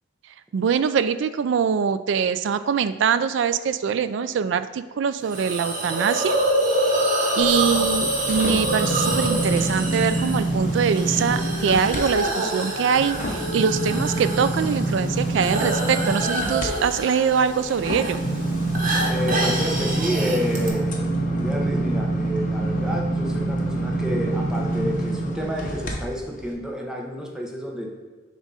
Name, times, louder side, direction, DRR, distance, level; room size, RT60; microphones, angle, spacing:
voice 1, 0.5-6.4 7.4-18.2, right 6 dB, 65° right, 13 dB, 0.3 m, -23 dB
Hiss, 5.3-20.7, right 1 dB, 45° right, 1.1 m, -27 dB
sound 1, 7.4-12.0 12.4-25.9 26.4-26.5, right 2 dB, 45° left, 0.8 m, -26 dB
voice 2, 7.6-8.0 19.1-27.9, equal, 5° right, -1 dB, 0.7 m, -30 dB
7.0 x 2.5 x 5.5 m, 1.4 s
head